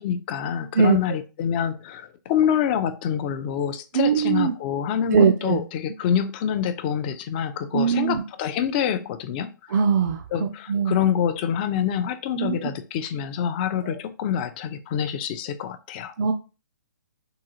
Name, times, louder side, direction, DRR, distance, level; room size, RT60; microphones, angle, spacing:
voice 1, 0.0-9.8 10.3-16.1, left 9 dB, 30° left, 11 dB, 0.3 m, -26 dB
voice 2, 3.9-4.5 5.1-5.6 7.7-8.2 9.7-10.9 12.4-12.7 13.8-14.0 16.2-16.3, right 6 dB, 55° right, 6 dB, 0.4 m, -21 dB
3.8 x 2.3 x 2.8 m, 0.32 s
figure-of-eight pair, 135°, 11 cm